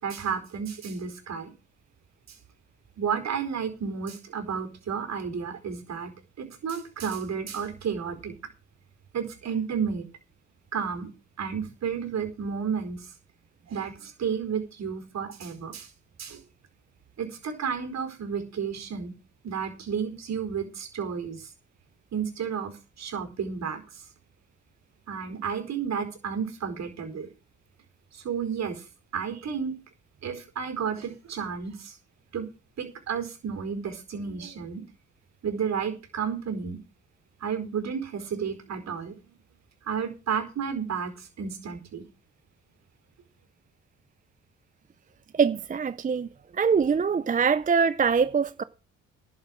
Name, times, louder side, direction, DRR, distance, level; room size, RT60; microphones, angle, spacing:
voice 1, 0.0-1.5 3.0-6.1 6.4-8.3 9.1-10.1 10.7-11.1 11.4-13.1 13.7-15.9 16.2-16.4 17.2-19.1 19.4-21.5 22.1-22.7 23.0-24.0 25.1-27.3 28.1-28.8 29.1-29.7 30.2-31.9 32.3-32.5 32.8-34.8 35.4-36.8 37.4-39.2 39.9-42.0, right 6 dB, 60° right, 4.6 m, -32 dB
voice 2, 45.3-46.3 46.5-48.6, right 6 dB, 25° right, 0.6 m, -23 dB
11.5 x 7.6 x 7.6 m
cardioid pair, 90°, 30 cm